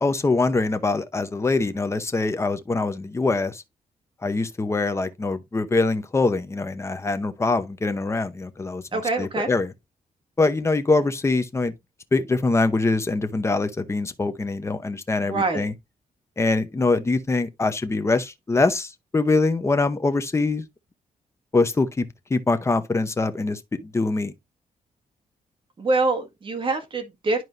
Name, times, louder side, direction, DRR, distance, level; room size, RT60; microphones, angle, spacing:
voice 1, 0.0-3.6 4.2-9.7 10.4-11.7 12.1-15.7 16.4-20.6 21.5-22.0 22.3-24.3, left 3 dB, 20° left, 0.8 m, -23 dB
voice 2, 8.9-9.5 15.2-15.7 25.8-27.4, right 3 dB, 35° right, 1.7 m, -25 dB
11.0 x 4.5 x 2.5 m
wide cardioid pair, 140°, 14 cm